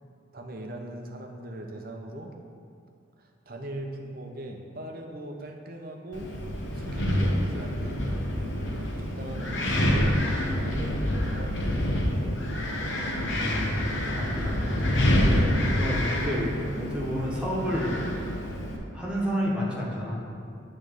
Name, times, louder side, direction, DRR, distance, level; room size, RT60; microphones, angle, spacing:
voice 1, 0.3-2.3 3.2-6.3 6.7-8.2 9.0-11.6 11.9-12.8, right 1 dB, 50° right, 2 dB, 0.7 m, -40 dB
Wind, 6.1-18.8, left 1 dB, 80° left, 1.0 m, -27 dB
voice 2, 13.2-13.8 14.1-14.8 15.1-18.3 18.9-20.2, equal, 5° right, -6 dB, 1.3 m, -30 dB
9.3 x 3.3 x 6.3 m, 2.3 s
head